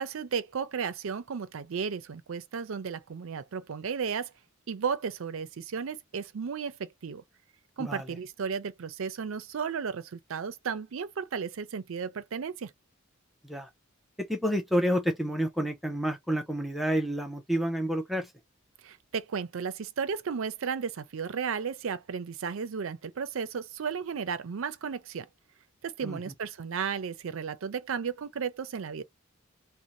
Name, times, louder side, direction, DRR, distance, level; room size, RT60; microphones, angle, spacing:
voice 1, 0.0-4.3 4.7-7.2 7.8-12.7 18.8-25.3 25.8-29.0, right 6 dB, 75° right, 0.5 m, -34 dB
voice 2, 7.8-8.1 13.4-13.7 14.2-18.3 26.0-26.2, equal, ahead, 0.4 m, -29 dB
2.6 x 2.1 x 2.9 m
head